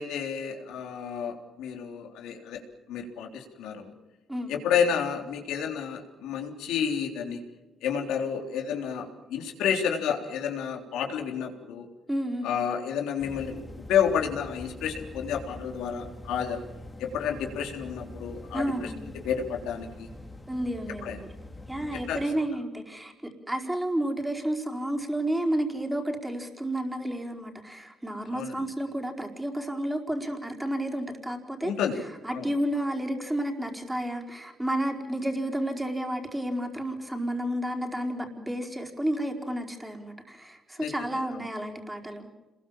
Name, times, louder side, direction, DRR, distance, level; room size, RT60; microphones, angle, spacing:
voice 1, 0.0-2.6 2.9-3.9 4.5-7.4 7.8-11.9 12.4-13.6 13.9-16.6 17.0-20.1 21.0-21.2 22.1-22.2 28.3-28.5 31.6-32.0 32.3-32.5 40.8-41.4, left 7 dB, 90° left, 3 dB, 3.6 m, -30 dB
voice 2, 12.1-12.5 18.5-18.9 20.5-21.3 21.7-31.7 32.2-42.3, right 1 dB, 10° right, 1 dB, 4.7 m, -31 dB
sound 1, 13.2-22.2, left 1 dB, 15° left, 2.6 m, -44 dB
27.5 x 21.5 x 7.5 m, 1.1 s
cardioid pair, 90°, 0 cm